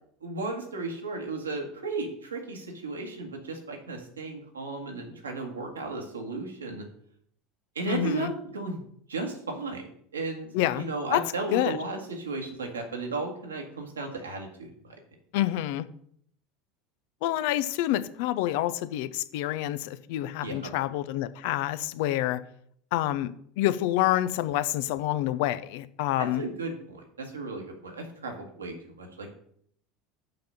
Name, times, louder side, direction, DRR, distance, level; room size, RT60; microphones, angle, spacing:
voice 1, 0.2-6.9 7.7-8.8 9.1-9.9 10.1-14.9 20.4-20.7 26.2-29.3, right 3 dB, 85° right, 2 dB, 1.6 m, -35 dB
voice 2, 7.9-8.3 10.5-10.8 11.1-11.2 11.5-11.8 15.3-15.9 17.2-22.4 22.9-23.3 23.6-26.4, left 14 dB, 65° left, 14 dB, 0.5 m, -27 dB
5.8 x 5.1 x 6.7 m, 0.65 s
hypercardioid pair, 75°, 0 cm